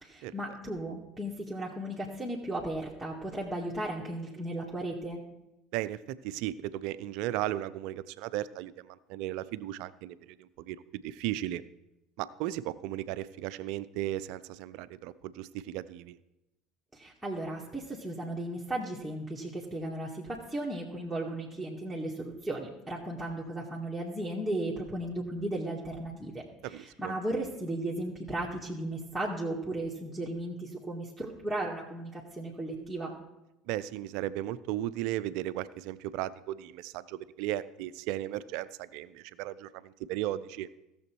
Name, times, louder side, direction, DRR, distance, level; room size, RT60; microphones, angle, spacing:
voice 1, 0.0-5.2 16.9-33.1, right 1 dB, ahead, -5 dB, 1.9 m, -35 dB
voice 2, 5.7-11.6 12.2-16.2 26.6-27.1 33.7-40.7, right 14 dB, 60° right, 16 dB, 0.5 m, -36 dB
16.0 x 7.0 x 4.6 m, 0.92 s
figure-of-eight pair, 65°, 0 cm